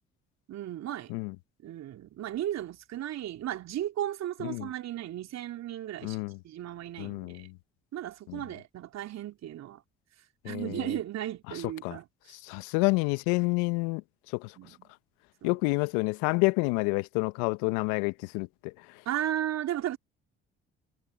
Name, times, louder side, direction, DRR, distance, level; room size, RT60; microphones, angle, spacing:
voice 1, 0.5-1.1 1.6-7.5 7.9-9.8 10.4-12.4 12.8-12.9 14.6-14.9 15.4-15.5 19.0-20.0, right 12 dB, 60° right, 3.4 m, -35 dB
voice 2, 6.0-6.3 7.0-7.4 8.3-8.4 10.4-10.8 11.8-12.0 12.4-14.0 14.3-14.5 15.4-18.7, left 28 dB, 75° left, 1.6 m, -28 dB
hypercardioid pair, 50°, 30 cm